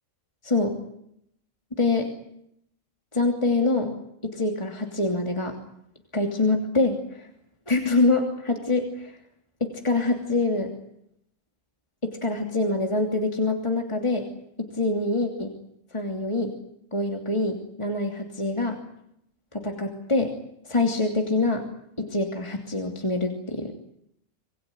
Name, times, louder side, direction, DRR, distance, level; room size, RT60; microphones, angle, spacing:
voice 1, 0.4-0.8 1.7-2.1 3.1-4.0 4.2-5.6 6.1-7.3 7.7-9.1 9.6-10.7 12.0-14.3 14.6-15.5 15.9-16.5 16.9-18.8 19.5-20.3 20.7-21.6 22.0-23.7, left 2 dB, 20° left, 3 dB, 3.1 m, -25 dB
27.5 x 21.0 x 9.5 m, 0.74 s
omnidirectional pair, 1.3 m